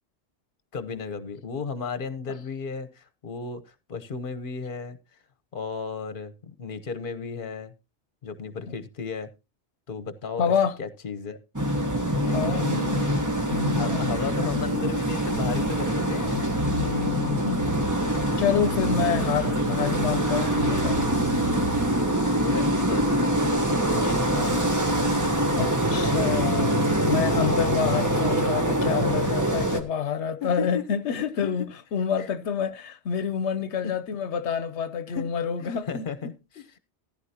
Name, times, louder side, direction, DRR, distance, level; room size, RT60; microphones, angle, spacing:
voice 1, 0.7-3.6 3.9-5.0 5.5-7.7 8.2-9.3 9.9-10.5 10.8-11.4 12.1-13.1 13.8-16.5 22.4-23.1 24.0-24.6 30.4-31.5 32.2-32.3 33.8-33.9 35.1-35.3 35.6-36.8, left 5 dB, 50° left, 1.2 m, -34 dB
voice 2, 10.4-10.8 12.3-12.6 13.5-14.1 16.8-17.7 18.4-21.0 25.5-36.1, left 7 dB, 85° left, 1.0 m, -28 dB
sound 1, 11.6-29.8, right 1 dB, 15° right, 1.3 m, -24 dB
sound 2, 15.3-22.1, equal, 75° right, 2.1 m, -36 dB
14.5 x 10.5 x 2.8 m
omnidirectional pair, 1.1 m